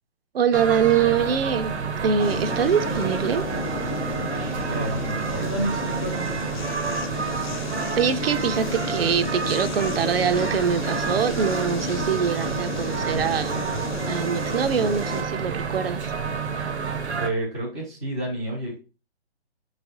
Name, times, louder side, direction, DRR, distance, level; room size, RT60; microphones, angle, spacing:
voice 1, 0.3-3.4 8.0-13.7 14.1-16.1, right 7 dB, 60° right, 0.5 m, -24 dB
sound 1, 0.5-17.3, right 6 dB, 80° right, 0.8 m, -29 dB
sound 2, 2.2-15.2, left 5 dB, 45° left, 0.6 m, -33 dB
voice 2, 4.6-6.3 17.1-18.8, right 1 dB, 5° left, 0.4 m, -30 dB
4.3 x 3.2 x 2.6 m
hypercardioid pair, 150°, 33 cm